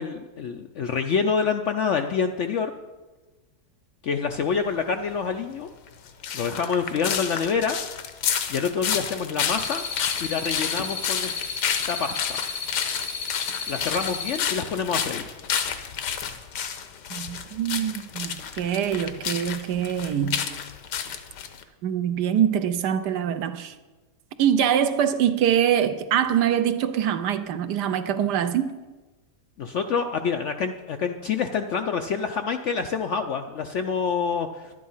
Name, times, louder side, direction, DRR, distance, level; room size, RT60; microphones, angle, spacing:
voice 1, 0.0-2.7 4.0-5.7 6.3-7.8 8.5-9.8 10.2-11.3 11.9-12.4 13.7-15.2 29.6-34.7, left 6 dB, 70° left, 6 dB, 0.7 m, -27 dB
sound 1, 5.9-21.6, left 8 dB, 90° left, 1.5 m, -30 dB
sound 2, 9.6-14.4, left 5 dB, 50° left, 3.3 m, -33 dB
voice 2, 17.1-20.4 21.8-23.7 24.4-28.7, right 9 dB, 80° right, 11 dB, 1.3 m, -24 dB
11.5 x 9.4 x 5.5 m, 1.2 s
omnidirectional pair, 1.8 m